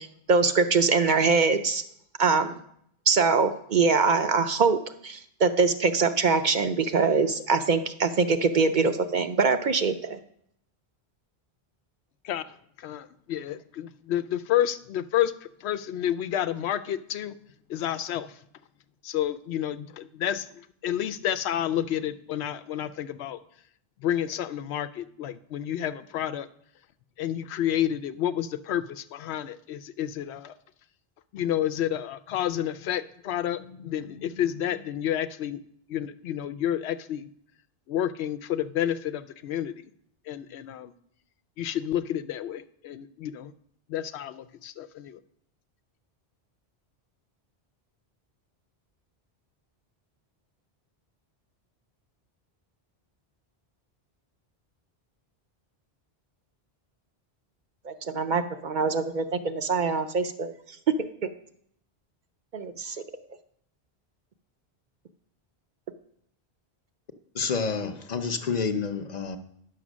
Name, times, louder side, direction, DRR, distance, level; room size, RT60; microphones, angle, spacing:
voice 1, 0.0-1.8 2.2-2.6 3.1-4.8 5.0-10.2 57.8-60.5 62.5-63.0, right 4 dB, 55° right, 8 dB, 0.6 m, -23 dB
voice 2, 12.8-15.3 15.6-17.4 17.7-18.4 19.0-20.5 20.8-23.4 24.0-26.5 27.2-30.5 31.3-35.6 35.9-37.3 37.9-39.7 40.3-40.9 41.6-43.5 43.9-45.2, left 11 dB, 85° left, 13 dB, 0.8 m, -30 dB
voice 3, 67.3-69.4, left 5 dB, 45° left, 9 dB, 0.8 m, -29 dB
9.7 x 6.5 x 6.2 m, 0.70 s
omnidirectional pair, 1.1 m